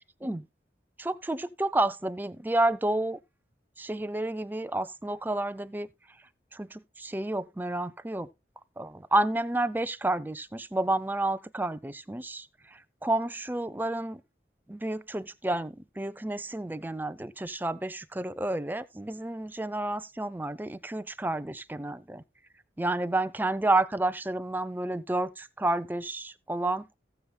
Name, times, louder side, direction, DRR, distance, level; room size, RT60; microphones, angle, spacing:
voice 1, 1.0-3.2 3.8-5.9 6.5-8.3 8.8-14.2 14.7-22.2 22.8-26.9, right 2 dB, 10° right, 0.4 m, -30 dB
18.0 x 7.0 x 2.2 m
head